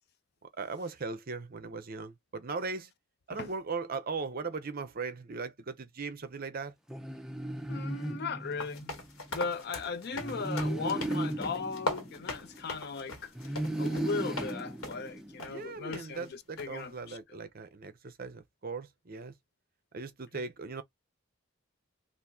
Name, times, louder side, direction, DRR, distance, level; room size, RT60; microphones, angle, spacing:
voice 1, 0.4-2.9 3.3-6.7 15.4-19.3 19.9-20.8, right 4 dB, 45° right, 0.6 m, -38 dB
sound 1, 6.9-9.0 10.1-12.8 13.4-15.6, right 1 dB, ahead, 0.4 m, -36 dB
voice 2, 7.7-9.0 9.3-13.3 13.8-17.2 20.3-20.5, left 4 dB, 50° left, 0.5 m, -37 dB
sound 2, 8.6-14.6 14.8-15.1 15.4-15.5 15.9-16.0 16.6-16.8, left 2 dB, 90° left, 1.4 m, -40 dB
2.8 x 2.5 x 3.6 m
head